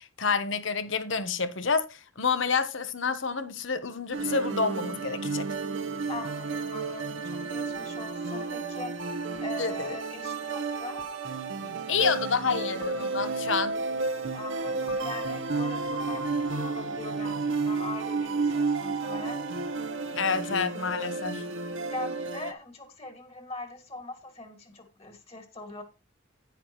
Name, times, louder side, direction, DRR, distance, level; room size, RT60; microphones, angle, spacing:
voice 1, 0.0-5.5 9.6-10.0 11.6-13.7 20.1-21.4, left 5 dB, 75° left, 1.2 m, -29 dB
sound 1, 4.1-22.5, right 4 dB, 75° right, 1.1 m, -32 dB
voice 2, 6.1-8.9 9.4-11.0 14.3-19.4 21.9-25.8, left 2 dB, 30° left, 2.1 m, -41 dB
sound 2, 7.7-7.8 9.3-9.7 11.0-11.5 12.8-13.6 14.9-15.8, left 6 dB, 50° left, 2.4 m, -51 dB
10.5 x 10.0 x 3.1 m
head